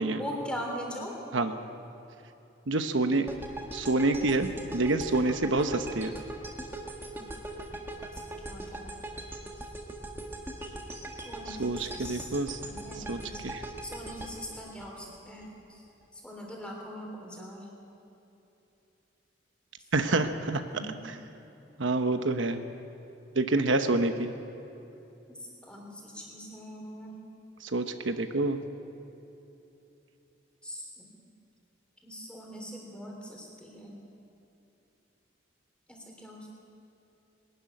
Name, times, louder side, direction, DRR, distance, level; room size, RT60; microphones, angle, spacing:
voice 1, 0.1-1.2 8.4-8.8 11.2-12.3 12.6-13.4 13.8-15.8 16.1-17.7 20.7-21.0 25.3-25.4 25.6-27.2 30.6-31.1 32.0-33.9 35.9-36.5, equal, 5° left, -1 dB, 3.4 m, -41 dB
voice 2, 2.7-3.3 3.7-6.1 11.5-12.6 12.9-13.6 19.9-20.6 21.8-22.6 23.3-24.3 27.6-28.6, right 2 dB, 85° right, 7 dB, 1.0 m, -27 dB
sound 1, 3.3-15.5, right 1 dB, 10° right, 1.7 m, -41 dB
21.5 x 12.5 x 9.7 m, 2.9 s
head